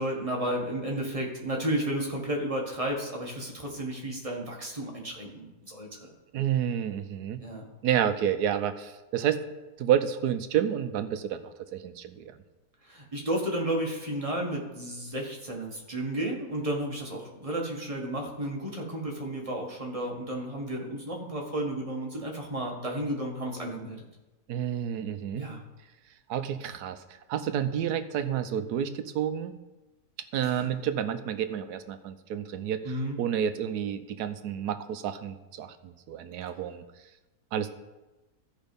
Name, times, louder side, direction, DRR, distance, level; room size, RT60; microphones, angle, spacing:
voice 1, 0.0-6.1 7.4-7.6 12.8-24.0 25.3-25.6 30.4-30.7 32.8-33.2, right 1 dB, 20° right, -1 dB, 1.6 m, -32 dB
voice 2, 6.3-7.4 7.8-9.4 9.8-12.2 24.5-25.5 26.3-27.0 27.3-29.5 30.3-32.8 33.2-36.8 37.5-37.7, right 9 dB, 85° right, 10 dB, 1.2 m, -29 dB
13.5 x 5.3 x 5.3 m, 1.1 s
omnidirectional pair, 1.7 m